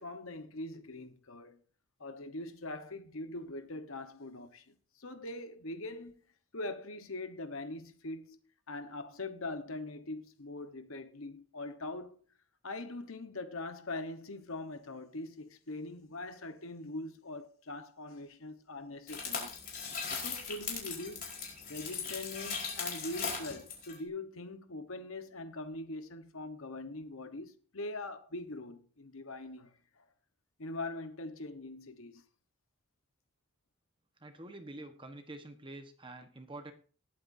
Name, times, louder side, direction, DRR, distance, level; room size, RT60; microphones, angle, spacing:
voice 1, 0.0-1.6 2.0-6.2 6.5-8.4 8.7-12.2 12.6-19.5 20.2-21.3 21.7-30.0 30.6-32.2, left 2 dB, 70° left, 1.2 m, -42 dB
sound 1, 19.1-24.0, left 5 dB, 40° left, 4.4 m, -38 dB
voice 2, 34.2-36.7, right 2 dB, 20° right, 1.2 m, -47 dB
19.5 x 8.8 x 2.7 m
head